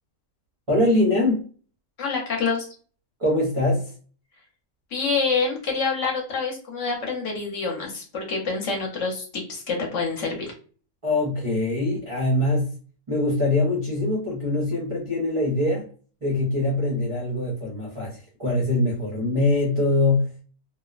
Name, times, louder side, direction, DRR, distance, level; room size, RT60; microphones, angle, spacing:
voice 1, 0.7-1.4 3.2-3.9 11.0-12.7 13.1-15.9 16.2-20.4, left 2 dB, 50° right, -4 dB, 0.3 m, -23 dB
voice 2, 2.0-2.7 4.9-10.5, left 4 dB, 60° left, 0 dB, 1.0 m, -27 dB
2.8 x 2.0 x 2.3 m, 0.41 s
omnidirectional pair, 1.6 m